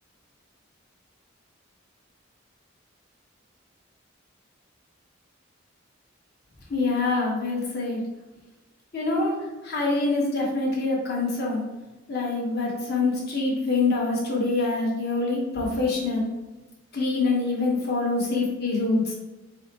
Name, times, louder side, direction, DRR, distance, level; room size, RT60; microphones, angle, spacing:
voice 1, 6.7-8.0 8.9-9.3 9.6-11.6 12.1-16.3 16.9-19.0, left 3 dB, 55° left, -3 dB, 1.2 m, -25 dB
4.7 x 2.1 x 4.3 m, 1.1 s
head